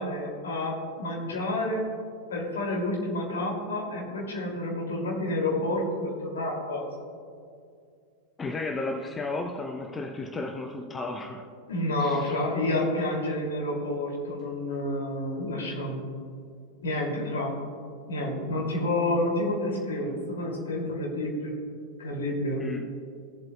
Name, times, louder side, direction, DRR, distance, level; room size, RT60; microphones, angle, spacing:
voice 1, 0.0-1.8 2.3-6.9 11.7-16.0 16.8-17.5 18.1-21.5 22.0-22.6, left 1 dB, 65° left, -1 dB, 2.4 m, -29 dB
voice 2, 8.4-11.4 12.0-12.4 22.6-22.8, left 2 dB, 15° left, 4 dB, 0.6 m, -34 dB
16.0 x 7.7 x 2.2 m, 2.3 s
figure-of-eight pair, 90°, 0 cm